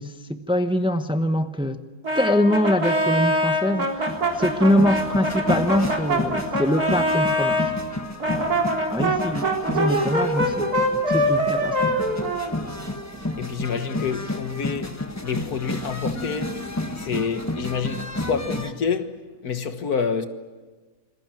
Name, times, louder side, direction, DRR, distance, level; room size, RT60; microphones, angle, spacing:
voice 1, 0.0-1.8 2.1-7.7 8.9-10.7 11.1-12.0, left 1 dB, 5° right, 0.9 m, -24 dB
Brass instrument, 2.0-7.7 8.2-13.0, equal, 85° right, 4.1 m, -24 dB
sound 1, 3.5-18.7, left 1 dB, 10° left, 1.4 m, -31 dB
voice 2, 8.3-8.7 13.4-20.3, left 6 dB, 80° left, 2.0 m, -28 dB
27.5 x 21.5 x 9.0 m
omnidirectional pair, 1.6 m